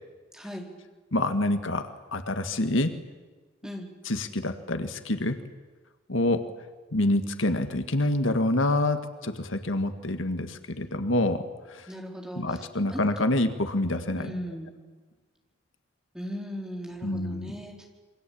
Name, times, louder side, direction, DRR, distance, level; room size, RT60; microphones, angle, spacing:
voice 1, 0.3-0.7 3.6-3.9 11.9-12.6 12.9-13.0 14.2-14.8 16.1-18.0, equal, 5° right, 0 dB, 4.3 m, -37 dB
voice 2, 1.1-2.9 4.1-5.4 6.1-6.5 6.9-11.4 11.7-11.9 12.4-14.3 17.0-17.5, left 1 dB, 80° left, 9 dB, 1.8 m, -27 dB
28.0 x 24.0 x 8.7 m, 1.3 s
head